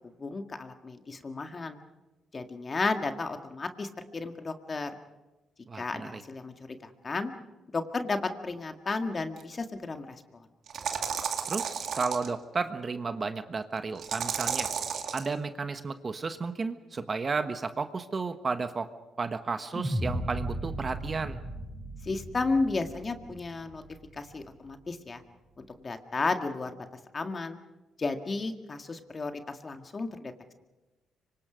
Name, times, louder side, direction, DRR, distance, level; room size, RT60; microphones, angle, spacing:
voice 1, 0.2-1.8 2.3-4.9 5.7-7.3 7.7-10.5 22.0-23.8 24.1-25.2 25.6-26.9 27.1-27.6 28.0-30.3, left 3 dB, 30° left, 6 dB, 1.9 m, -33 dB
voice 2, 5.7-6.2 11.5-14.7 15.1-18.9 19.2-21.4, right 4 dB, 35° right, 9 dB, 1.3 m, -33 dB
sound 1, 9.4-9.5 10.7-12.3 14.0-15.3, right 7 dB, 65° right, 2.3 m, -32 dB
sound 2, 19.7-24.1, right 1 dB, 5° left, 6.0 m, -36 dB
25.5 x 25.0 x 5.2 m, 1.1 s
cardioid pair, 90°, 0 cm